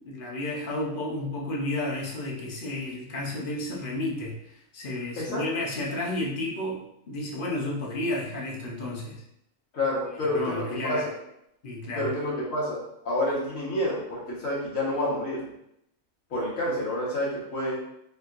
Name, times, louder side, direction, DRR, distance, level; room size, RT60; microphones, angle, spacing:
voice 1, 0.0-6.8 7.1-9.2 10.2-11.1 11.6-12.1, left 1 dB, 50° left, -2 dB, 0.8 m, -32 dB
voice 2, 9.7-11.1 11.9-12.8 13.0-15.5 16.3-17.8, left 1 dB, 70° left, -6 dB, 1.6 m, -28 dB
4.2 x 2.8 x 2.5 m, 0.79 s
omnidirectional pair, 1.5 m